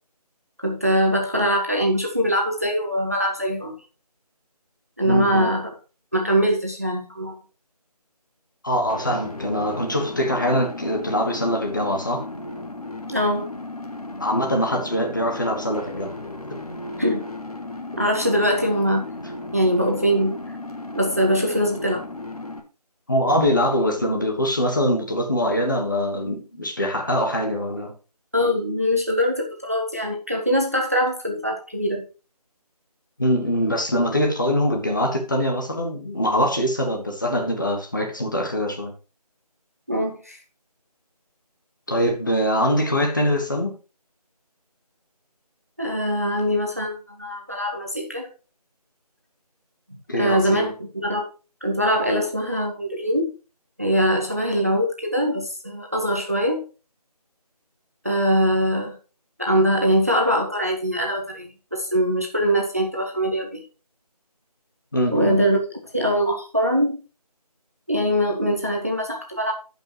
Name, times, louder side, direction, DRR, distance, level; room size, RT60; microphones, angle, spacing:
voice 1, 0.6-3.8 5.0-5.7 6.1-7.3 13.1-13.5 17.0-17.3 18.0-19.0 19.5-20.4 20.9-22.0 28.3-32.1 39.9-40.4 45.8-48.3 50.1-51.3 51.6-53.3 53.8-56.6 58.0-59.0 59.4-63.6 65.1-65.6 65.9-67.0 67.9-69.5, equal, 25° right, 0.8 m, -22 dB
voice 2, 5.0-5.5 8.6-12.3 14.2-16.1 23.1-27.9 33.2-38.9 41.9-43.8 50.1-50.7 64.9-65.4, equal, 30° left, 1.3 m, -23 dB
sound 1, 8.9-22.6, left 2 dB, 65° left, 1.7 m, -35 dB
14.0 x 5.4 x 3.0 m
figure-of-eight pair, 175°, 20 cm